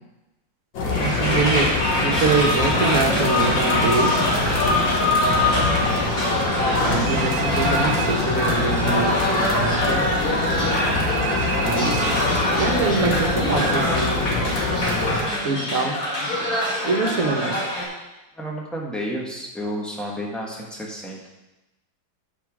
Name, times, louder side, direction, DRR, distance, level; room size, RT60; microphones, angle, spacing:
sound 1, 0.7-15.2, left 3 dB, 85° left, 2.0 m, -25 dB
sound 2, 0.8-17.9, left 1 dB, 50° left, 2.2 m, -24 dB
voice 1, 1.0-1.7 2.0-4.1 6.7-10.1 11.5-14.3 15.4-15.9 16.8-17.6, right 4 dB, 50° right, 0 dB, 1.5 m, -25 dB
voice 2, 7.0-7.4 15.2-15.8 18.4-21.3, equal, ahead, -3 dB, 1.2 m, -32 dB
Telephone, 7.1-8.2 11.1-12.2, right 9 dB, 75° right, 1.2 m, -31 dB
9.0 x 5.0 x 6.0 m, 1.0 s
omnidirectional pair, 2.0 m